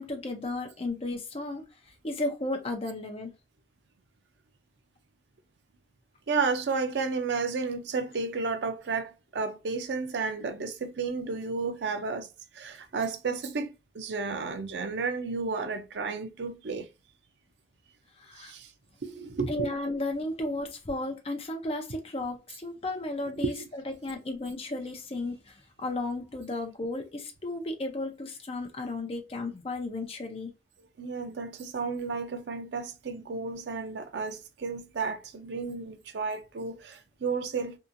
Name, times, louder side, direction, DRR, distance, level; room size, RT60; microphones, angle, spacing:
voice 1, 0.0-3.3 18.2-18.5 19.5-30.5, left 2 dB, 35° left, 0.6 m, -34 dB
voice 2, 6.3-12.3 12.5-16.9 18.4-18.7 19.0-19.7 23.4-23.7 31.0-37.8, right 4 dB, 80° right, 0.5 m, -32 dB
2.8 x 2.4 x 2.5 m
head